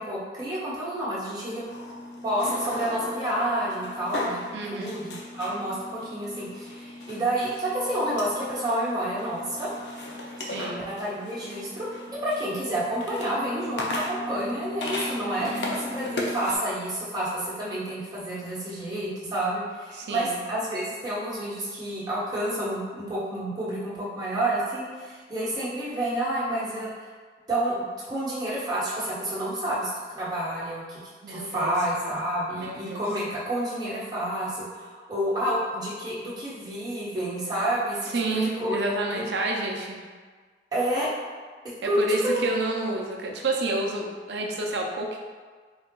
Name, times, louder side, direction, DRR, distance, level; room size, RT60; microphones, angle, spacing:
voice 1, 0.0-1.6 2.2-9.7 10.8-11.9 12.2-26.9 27.5-27.7 28.1-31.0 31.3-38.8 39.1-39.2 40.7-41.1 41.8-42.0 42.2-42.4, right 1 dB, 20° right, -10 dB, 1.3 m, -29 dB
sound 1, 1.6-16.6, left 1 dB, 70° left, 0.6 m, -36 dB
voice 2, 4.5-5.0 10.4-10.9 15.4-15.8 20.0-20.4 31.2-32.1 32.5-33.0 38.1-40.0 41.8-45.2, right 2 dB, 70° right, 0 dB, 0.5 m, -30 dB
3.9 x 2.4 x 3.7 m, 1.5 s
head